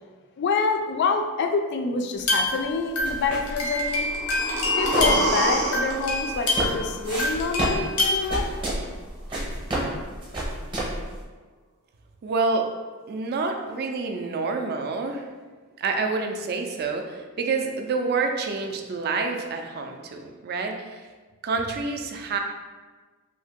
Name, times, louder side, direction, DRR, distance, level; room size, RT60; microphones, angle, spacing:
voice 1, 0.4-4.1 4.8-8.5, left 4 dB, 50° left, 5 dB, 0.3 m, -27 dB
sound 1, 2.2-6.9 7.2-8.3, left 2 dB, 85° left, 0.8 m, -27 dB
sound 2, 3.0-11.2, right 1 dB, 20° right, 0.7 m, -30 dB
sound 3, 3.8-7.8 8.1-8.2, right 2 dB, 90° right, 0.6 m, -29 dB
voice 2, 12.2-12.7 13.1-15.3 15.8-21.1 21.4-22.4, right 4 dB, 45° right, 4 dB, 0.3 m, -28 dB
2.7 x 2.6 x 3.6 m, 1.4 s
head